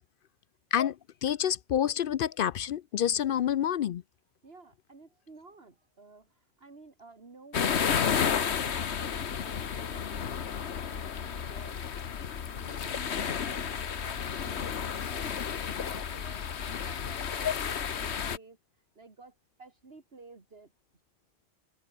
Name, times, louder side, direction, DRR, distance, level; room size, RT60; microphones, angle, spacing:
voice 1, 1.2-4.0 17.4-17.5, left 10 dB, 60° left, 0.6 m, -28 dB
voice 2, 4.4-12.2 12.5-20.7, right 3 dB, 65° right, 2.7 m, -54 dB
sound 1, 7.5-18.4, left 7 dB, 80° left, 1.4 m, -32 dB
omnidirectional pair, 1.1 m